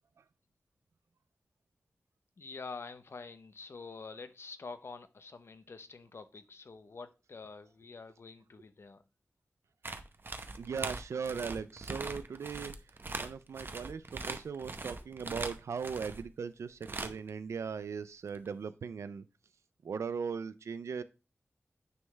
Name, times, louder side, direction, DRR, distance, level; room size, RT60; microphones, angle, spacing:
voice 1, 2.4-9.0, left 4 dB, 60° left, 0.7 m, -47 dB
sound 1, 9.8-16.3 16.8-17.3 18.3-18.5, right 3 dB, 50° right, 0.7 m, -41 dB
voice 2, 10.6-12.7 13.2-19.2 19.8-21.0, right 6 dB, 85° right, 0.4 m, -38 dB
9.4 x 3.4 x 3.2 m
cardioid pair, 60°, 5 cm